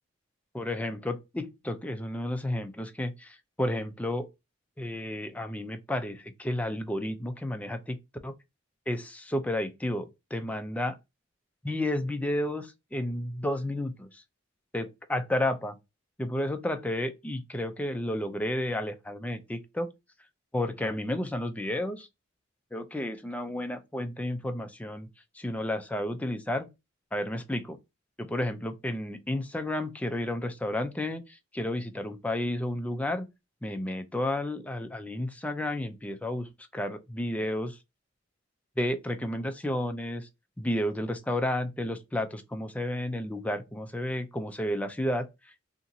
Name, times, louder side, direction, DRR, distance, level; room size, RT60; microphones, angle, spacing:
voice 1, 0.5-4.3 4.8-8.0 8.2-8.3 8.9-11.0 11.6-14.2 14.7-15.8 16.2-19.9 20.5-22.1 22.7-25.1 25.3-26.7 27.1-27.8 28.2-33.3 33.6-37.8 38.8-40.3 40.6-45.7, left 1 dB, 5° left, 0.3 m, -32 dB
2.9 x 2.6 x 2.6 m
head